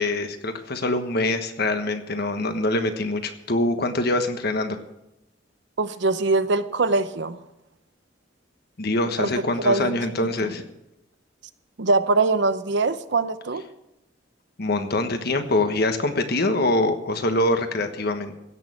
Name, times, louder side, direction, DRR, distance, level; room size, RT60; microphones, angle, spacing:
voice 1, 0.0-4.8 8.8-10.6 14.6-18.3, left 2 dB, 55° left, 7 dB, 1.3 m, -24 dB
voice 2, 5.8-7.4 9.2-9.3 9.6-10.0 11.8-13.6, right 3 dB, 65° right, 12 dB, 0.8 m, -22 dB
16.0 x 6.5 x 8.8 m, 0.91 s
head